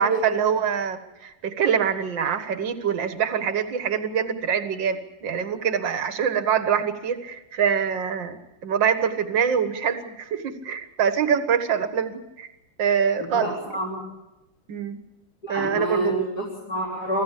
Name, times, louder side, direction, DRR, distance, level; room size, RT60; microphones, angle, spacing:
voice 1, 0.0-12.5 12.8-13.6 14.7-15.0 15.5-16.3, right 7 dB, 60° right, 8 dB, 2.2 m, -24 dB
voice 2, 13.2-14.0 15.4-17.2, right 1 dB, 45° left, -4 dB, 4.7 m, -28 dB
25.5 x 15.5 x 8.5 m, 0.99 s
omnidirectional pair, 2.3 m